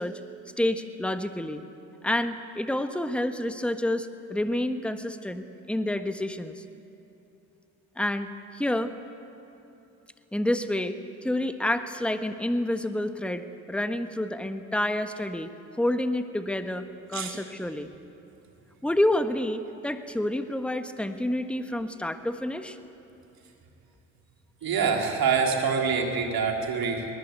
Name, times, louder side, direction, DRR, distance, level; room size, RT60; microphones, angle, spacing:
voice 1, 0.0-1.6 2.0-6.6 8.0-8.9 10.3-17.9 18.8-22.8, left 1 dB, 5° left, 9 dB, 1.4 m, -29 dB
voice 2, 24.6-27.1, right 5 dB, 55° right, 1 dB, 3.7 m, -25 dB
22.0 x 19.5 x 8.2 m, 2.8 s
hypercardioid pair, 50°, 42 cm